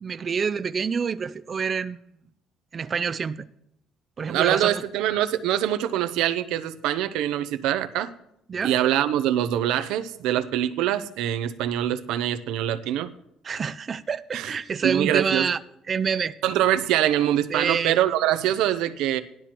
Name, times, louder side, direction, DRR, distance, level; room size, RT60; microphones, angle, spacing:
voice 1, 0.0-2.0 2.7-3.4 4.2-4.8 8.5-8.7 13.4-15.6 15.9-16.3 17.5-18.0, right 6 dB, 30° right, 12 dB, 0.3 m, -27 dB
voice 2, 4.3-8.1 8.6-13.1 14.3-14.5 14.8-15.5 16.4-19.2, right 12 dB, 85° right, 11 dB, 0.6 m, -24 dB
18.0 x 11.5 x 2.9 m, 0.81 s
cardioid pair, 145°, 0 cm